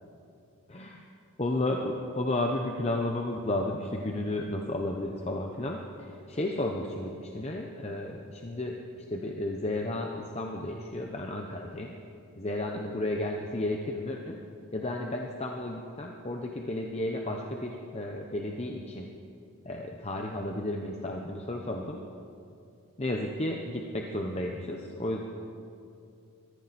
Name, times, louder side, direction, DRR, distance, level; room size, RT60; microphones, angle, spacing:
voice 1, 0.7-1.0 1.4-11.9 12.4-14.4 14.7-19.1 19.7-22.0 23.0-25.2, left 1 dB, 30° left, 1 dB, 0.9 m, -33 dB
23.0 x 15.0 x 4.2 m, 2.6 s
head